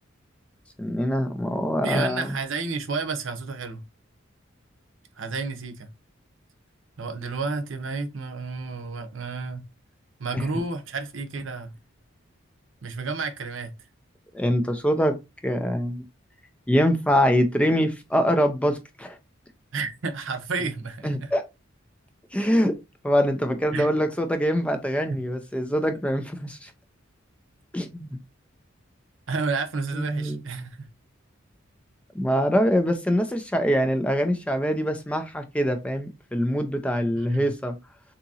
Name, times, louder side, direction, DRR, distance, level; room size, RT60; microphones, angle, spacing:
voice 1, 0.8-2.3 14.3-15.2 15.4-16.0 16.7-19.2 21.0-21.4 22.3-22.8 23.0-26.7 27.7-28.2 29.9-30.4 32.1-37.7, equal, 5° left, 0.3 m, -24 dB
voice 2, 1.8-3.8 5.2-5.9 7.0-9.6 10.2-11.7 12.8-13.7 19.7-21.3 23.7-23.9 25.1-25.2 29.3-30.8 37.2-37.5, right 4 dB, 65° right, 0.7 m, -31 dB
3.6 x 2.8 x 2.7 m
head